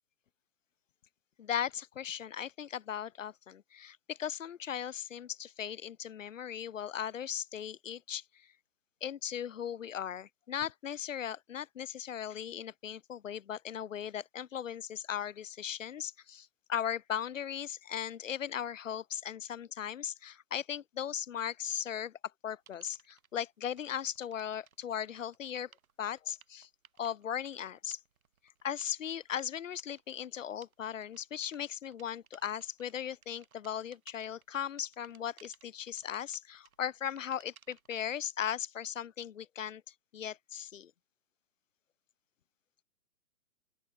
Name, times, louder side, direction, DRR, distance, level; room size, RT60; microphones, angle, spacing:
voice 1, 1.4-8.5 9.0-22.1 22.4-25.7 26.0-26.7 27.0-28.0 28.6-39.8 40.1-40.9, left 9 dB, 55° left, 2.3 m, -38 dB
sound 1, 22.7-23.3 23.7-38.3, right 7 dB, 65° right, 6.6 m, -62 dB
open air
hypercardioid pair, 165°, 45 cm